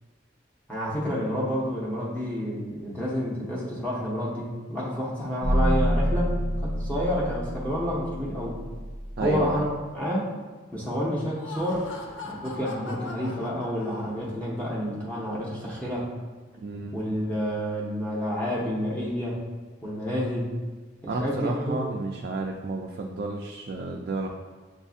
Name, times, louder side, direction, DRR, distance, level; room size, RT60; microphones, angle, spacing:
voice 1, 0.7-8.6 9.2-9.7 9.9-10.4 10.7-11.9 12.2-16.1 16.9-19.4 19.8-20.5 21.0-22.0, equal, 10° left, -7 dB, 0.7 m, -29 dB
sound 1, 5.4-9.6, equal, 65° left, 1.3 m, -27 dB
voice 2, 9.2-9.7 16.6-17.0 21.1-24.3, right 2 dB, 55° right, 1 dB, 0.3 m, -31 dB
Laughter, 11.2-14.5, left 3 dB, 80° left, 0.6 m, -41 dB
7.2 x 2.6 x 2.4 m, 1.4 s
head